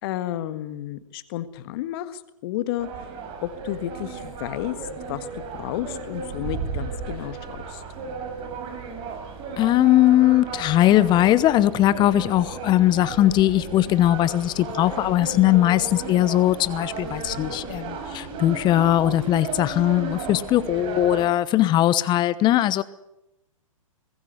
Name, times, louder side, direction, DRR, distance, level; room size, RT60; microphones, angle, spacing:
voice 1, 0.0-3.1 3.4-4.8 5.1-7.8, left 13 dB, 45° left, 12 dB, 1.6 m, -32 dB
sound 1, 2.8-21.3, right 4 dB, 30° right, 4.8 m, -34 dB
voice 2, 9.6-22.8, left 13 dB, 25° left, 17 dB, 1.0 m, -20 dB
21.5 x 15.5 x 9.8 m, 0.86 s
figure-of-eight pair, 115°, 18 cm